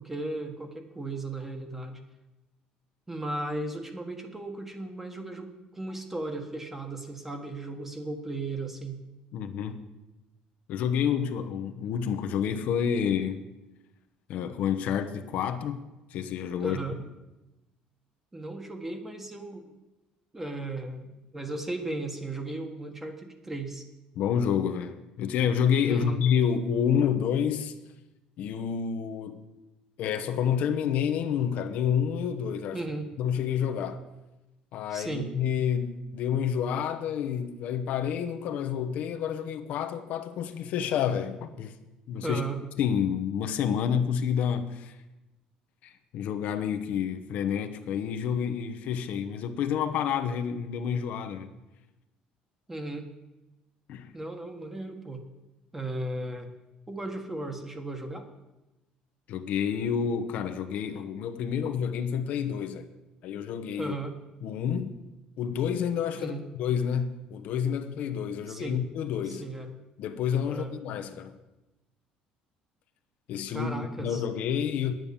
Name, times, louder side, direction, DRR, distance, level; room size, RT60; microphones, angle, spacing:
voice 1, 0.0-2.0 3.1-9.0 16.6-17.0 18.3-19.7 20.3-23.8 25.9-26.2 32.7-33.1 34.9-35.3 42.2-42.6 52.7-53.1 54.1-55.2 55.7-56.5 56.9-58.3 63.8-64.1 66.2-66.4 68.5-68.8 69.3-69.7 70.5-70.8 73.5-74.2, right 2 dB, 10° right, 1.5 m, -36 dB
voice 2, 9.3-9.8 10.7-13.5 14.3-15.8 16.1-16.8 24.2-27.7 28.4-29.5 30.0-32.8 33.2-34.0 34.7-41.7 42.1-42.4 42.8-44.9 45.8-51.5 53.9-54.1 59.3-62.9 63.2-63.9 64.4-65.0 65.4-69.4 70.0-71.3 73.3-73.7 74.0-74.9, left 8 dB, 70° left, 0.9 m, -29 dB
9.6 x 9.1 x 7.1 m
cardioid pair, 120°, 3 cm